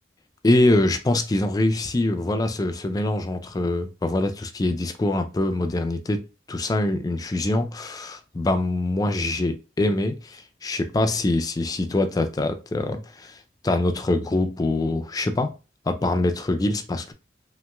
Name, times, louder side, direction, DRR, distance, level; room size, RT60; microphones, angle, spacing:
voice 1, 0.4-13.4 13.6-15.5 15.9-17.1, left 2 dB, 20° left, 0.3 m, -24 dB
3.0 x 2.9 x 2.2 m
head